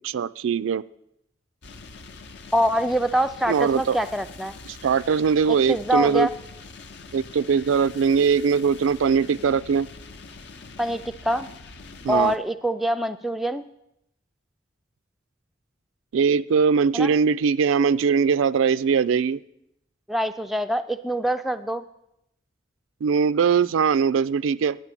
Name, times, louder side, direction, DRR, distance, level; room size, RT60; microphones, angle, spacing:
voice 1, 0.0-0.8 3.5-4.0 4.7-6.3 7.1-9.9 12.0-12.3 16.1-19.4 23.0-24.8, right 6 dB, 85° right, 16 dB, 0.3 m, -21 dB
sound 1, 1.6-12.4, left 4 dB, 60° left, 0.7 m, -44 dB
voice 2, 2.5-4.5 5.7-6.3 10.8-11.5 12.1-13.6 16.9-17.1 20.1-21.8, right 1 dB, ahead, 8 dB, 0.3 m, -24 dB
9.8 x 7.7 x 8.2 m, 0.81 s
head